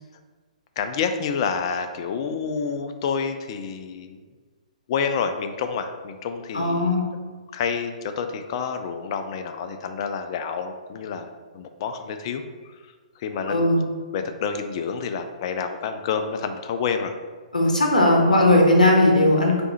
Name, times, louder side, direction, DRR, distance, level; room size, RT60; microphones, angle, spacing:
voice 1, 0.8-4.2 4.9-7.0 7.5-12.4 13.2-13.8 14.1-17.1, left 6 dB, 40° left, 7 dB, 0.3 m, -28 dB
voice 2, 6.5-7.0 13.5-13.8 17.5-19.6, left 1 dB, 85° left, 0 dB, 0.8 m, -18 dB
3.5 x 2.6 x 4.2 m, 1.4 s
figure-of-eight pair, 125°, 4 cm